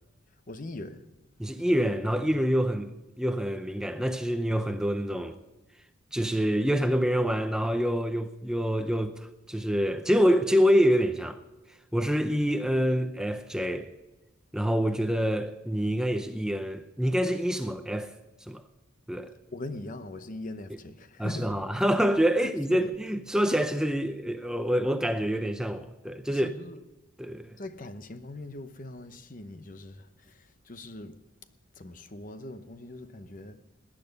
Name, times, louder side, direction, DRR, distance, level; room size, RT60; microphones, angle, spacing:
voice 1, 0.5-1.1 19.5-21.7 22.4-22.9 26.3-26.8 27.6-31.3 31.7-33.7, left 2 dB, 40° left, 0.9 m, -41 dB
voice 2, 1.4-5.4 6.1-11.4 11.7-13.9 14.5-18.1 18.4-18.6 19.1-19.3 21.2-26.6 27.2-27.6, equal, 5° right, 0.5 m, -26 dB
19.0 x 10.5 x 5.3 m
head